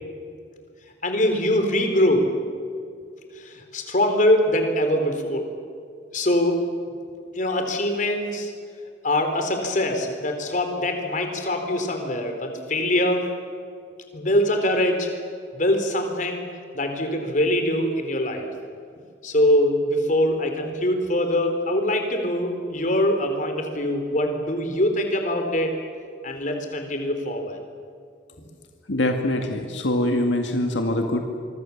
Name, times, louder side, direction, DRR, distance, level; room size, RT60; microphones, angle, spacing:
voice 1, 1.0-2.3 3.4-5.5 6.1-6.6 7.3-8.5 9.0-13.3 14.1-15.1 15.5-16.5 16.7-18.5 19.2-25.8 26.2-27.6, left 1 dB, 45° left, 5 dB, 4.0 m, -23 dB
voice 2, 28.9-31.3, left 1 dB, 85° left, 4 dB, 2.1 m, -24 dB
25.5 x 24.0 x 7.3 m, 2.3 s
head